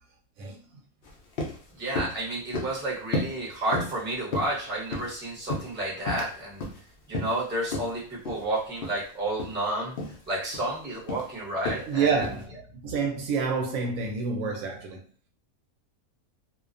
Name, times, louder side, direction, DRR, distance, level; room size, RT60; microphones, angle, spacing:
sound 1, 1.0-1.1 1.4-1.6 1.9-2.2 2.5-2.8 3.1-3.4 3.7-4.0 4.3-5.1 5.5-6.3 6.6-6.8 7.1-7.4 7.7-7.9 8.2-8.4 8.8-9.0 9.3-9.5 10.0-10.2 10.5-10.8 11.1-11.3 11.6-11.9 12.2-12.4, left 2 dB, 70° left, 0.5 m, -32 dB
voice 1, 1.8-6.6 7.1-10.0 10.3-12.3, right 1 dB, 10° right, 0.6 m, -31 dB
voice 2, 11.9-15.0, right 5 dB, 75° right, 1.0 m, -28 dB
2.4 x 2.2 x 2.4 m
omnidirectional pair, 1.5 m